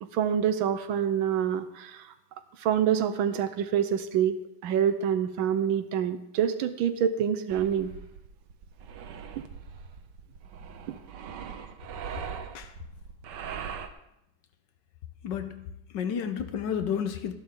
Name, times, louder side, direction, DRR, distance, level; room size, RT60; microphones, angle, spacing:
voice 1, 0.0-2.1 2.6-4.4 4.6-7.9, right 8 dB, 90° right, 10 dB, 1.6 m, -26 dB
sound 1, 7.5-13.9, right 7 dB, 70° right, 1.4 m, -41 dB
voice 2, 15.2-15.6 15.9-17.3, left 8 dB, 70° left, 9 dB, 1.4 m, -31 dB
13.5 x 11.0 x 3.7 m, 0.83 s
omnidirectional pair, 2.1 m